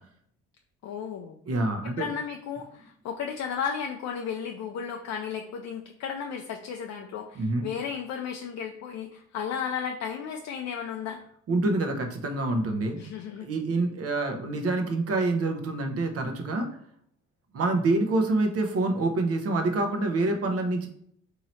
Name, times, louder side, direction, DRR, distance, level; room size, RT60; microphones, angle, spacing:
voice 1, 0.8-1.4 1.8-11.2 13.0-13.5, left 7 dB, 60° left, 3 dB, 0.5 m, -34 dB
voice 2, 1.5-2.1 7.4-7.6 11.5-13.0 13.4-16.7 17.5-20.9, right 2 dB, 50° right, 4 dB, 0.8 m, -26 dB
3.0 x 2.8 x 4.1 m, 0.67 s
cardioid pair, 90°, 30 cm